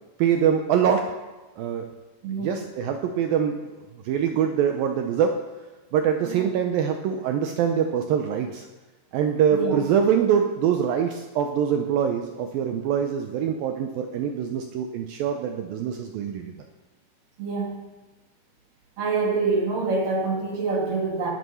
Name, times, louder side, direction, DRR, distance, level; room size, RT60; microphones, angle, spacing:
voice 1, 0.2-1.0 1.6-1.9 2.3-3.6 4.0-5.3 5.9-8.7 9.1-16.5, right 8 dB, 90° right, 5 dB, 2.0 m, -24 dB
voice 2, 2.2-2.6 6.3-6.5 9.5-9.8 17.4-17.8 19.0-21.3, right 4 dB, 55° right, -3 dB, 3.6 m, -26 dB
13.0 x 11.0 x 5.6 m, 1.2 s
omnidirectional pair, 5.2 m